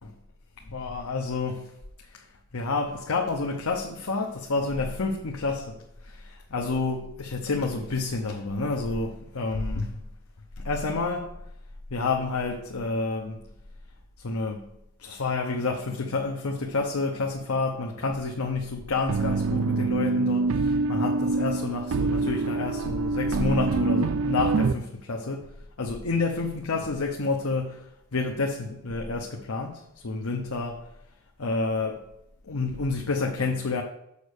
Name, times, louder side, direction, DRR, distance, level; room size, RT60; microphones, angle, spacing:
voice 1, 0.6-1.7 2.1-2.2 2.5-5.8 6.0-10.0 10.6-11.3 11.9-13.4 14.2-14.6 15.0-25.5 25.8-27.9 28.1-30.8 31.4-32.0 32.4-33.8, left 3 dB, 85° left, 0.8 m, -29 dB
sound 1, 19.1-24.7, right 3 dB, 75° right, 0.4 m, -25 dB
6.9 x 5.3 x 6.6 m
head